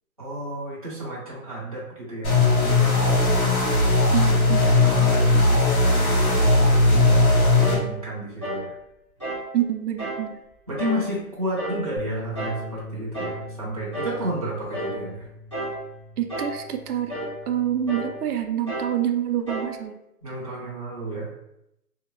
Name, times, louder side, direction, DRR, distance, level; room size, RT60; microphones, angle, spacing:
voice 1, 0.2-3.6 4.8-7.2 7.5-8.7 10.7-15.3 20.2-21.3, right 1 dB, 25° right, -8 dB, 0.5 m, -32 dB
sound 1, 2.2-7.8, left 2 dB, 75° left, 1.1 m, -18 dB
voice 2, 4.1-4.8 9.5-10.4 16.2-17.2 17.5-20.0, right 10 dB, 90° right, 6 dB, 0.6 m, -27 dB
sound 2, 7.6-7.9 8.4-8.7 9.2-9.5 10.0-10.3 10.8-11.1 11.6-11.9 12.4-12.6 13.1-13.4 13.9-14.2 14.7-15.0 15.5-15.8 16.3-16.6 17.1-17.4 17.9-18.2 18.7-19.0 19.5-19.8, right 1 dB, 20° left, 0.5 m, -31 dB
sound 3, 12.0-18.2, left 1 dB, 45° left, 1.0 m, -40 dB
2.7 x 2.1 x 2.9 m, 0.81 s
hypercardioid pair, 175°, 44 cm